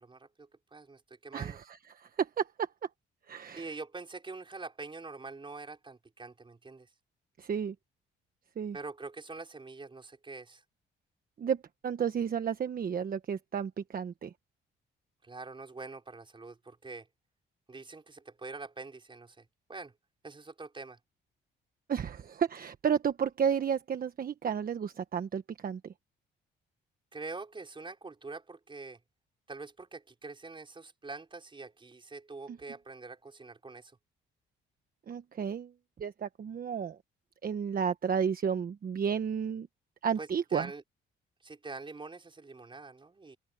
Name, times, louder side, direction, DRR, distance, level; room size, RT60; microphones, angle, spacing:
voice 1, 0.0-1.6 3.5-6.9 8.7-10.6 15.2-17.1 17.7-19.9 20.2-21.0 27.1-29.0 29.5-33.9 40.2-40.8 41.4-43.4, right 3 dB, 25° right, 5.2 m, -45 dB
voice 2, 1.3-1.8 2.2-2.4 3.3-3.6 7.4-7.7 8.6-8.8 11.4-11.6 11.8-14.3 21.9-25.8 32.5-32.6 35.1-35.7 36.0-37.0 37.4-39.7 40.0-40.7, right 7 dB, 45° right, 1.3 m, -32 dB
open air
cardioid pair, 90°, 20 cm